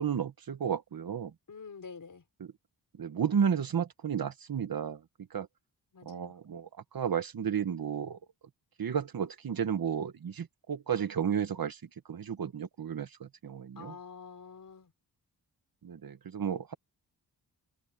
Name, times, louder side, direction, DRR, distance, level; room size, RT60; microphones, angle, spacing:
voice 1, 0.0-1.3 2.4-2.5 3.0-5.0 5.3-5.5 6.0-8.2 8.8-11.8 12.1-13.9 15.8-16.8, right 7 dB, 60° right, 1.5 m, -32 dB
voice 2, 1.5-2.2 5.9-6.3 13.8-14.9, left 5 dB, 55° left, 5.8 m, -47 dB
wide cardioid pair, 110°, 39 cm